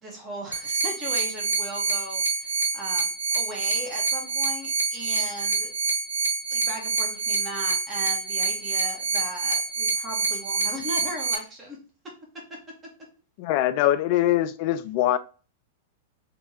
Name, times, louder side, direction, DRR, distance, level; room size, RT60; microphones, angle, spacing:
voice 1, 0.0-5.7 6.5-11.8, right 1 dB, 25° right, 1.6 m, -37 dB
sound 1, 0.5-11.4, right 4 dB, 85° right, 0.5 m, -27 dB
voice 2, 13.4-15.2, left 13 dB, 50° left, 0.4 m, -23 dB
3.1 x 2.9 x 3.4 m
figure-of-eight pair, 100°, 0 cm